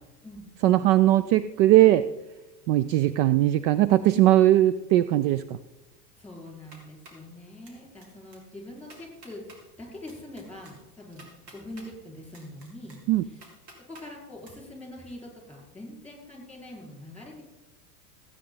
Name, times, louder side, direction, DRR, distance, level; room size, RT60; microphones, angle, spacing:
voice 1, 0.6-2.0 2.7-5.6 13.1-13.2, right 14 dB, 50° right, 15 dB, 0.5 m, -20 dB
voice 2, 6.2-13.4 13.9-17.4, left 1 dB, 5° left, -1 dB, 5.0 m, -44 dB
sound 1, 6.5-7.3 7.6-8.1 8.3-8.4 8.8-9.6 10.1-11.9 12.3-14.1 14.4-14.5, right 2 dB, 75° right, 3.2 m, -51 dB
16.0 x 8.8 x 4.0 m, 1.0 s
hypercardioid pair, 100°, 48 cm